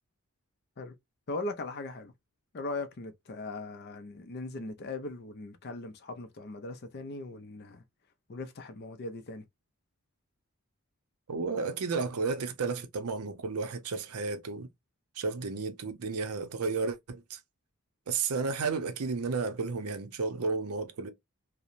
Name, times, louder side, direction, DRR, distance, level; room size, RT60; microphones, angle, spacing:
voice 1, 1.3-2.1 2.5-7.8 8.3-9.4, left 2 dB, 45° left, 0.4 m, -39 dB
voice 2, 11.3-14.7 15.2-17.4 18.1-21.1, right 4 dB, 80° right, 0.6 m, -32 dB
2.9 x 2.0 x 2.4 m
head